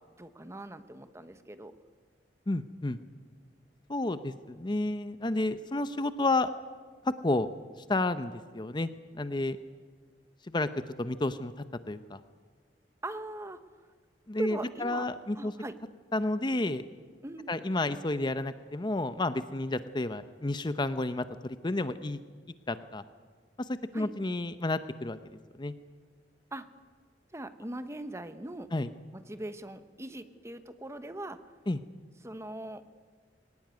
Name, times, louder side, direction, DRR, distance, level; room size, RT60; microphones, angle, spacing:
voice 1, 0.0-1.7 13.0-13.6 14.4-15.1 15.4-15.7 17.2-17.5 23.9-24.1 26.5-26.7 27.3-28.7 29.1-31.4 32.2-32.8, right 1 dB, 15° right, 10 dB, 1.0 m, -40 dB
voice 2, 2.5-3.0 3.9-6.5 7.0-7.5 7.9-8.9 9.2-9.6 10.5-10.7 11.0-11.5 11.9-12.2 14.3-15.5 16.1-16.8 17.5-22.2 22.7-23.0 23.6-25.2 25.6-25.7 28.7-28.9 31.7-31.8, left 2 dB, 25° left, 12 dB, 0.7 m, -31 dB
21.5 x 18.0 x 9.5 m, 1.5 s
head